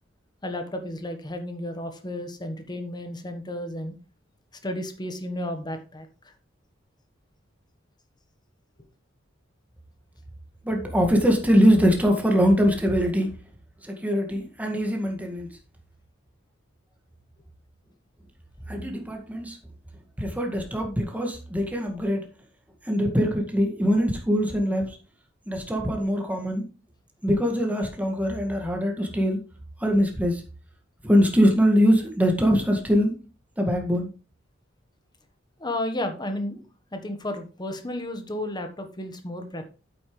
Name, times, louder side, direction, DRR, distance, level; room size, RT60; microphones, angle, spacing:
voice 1, 0.4-3.9 4.6-6.1 35.6-36.7 36.9-39.7, left 1 dB, 20° left, 6 dB, 1.3 m, -32 dB
voice 2, 10.6-13.3 13.8-15.5 18.7-19.6 20.2-22.3 22.8-25.0 25.5-26.6 27.2-29.4 29.8-30.4 31.0-33.1 33.6-34.1, equal, 10° right, 2 dB, 1.9 m, -22 dB
8.8 x 8.4 x 3.3 m, 0.33 s
head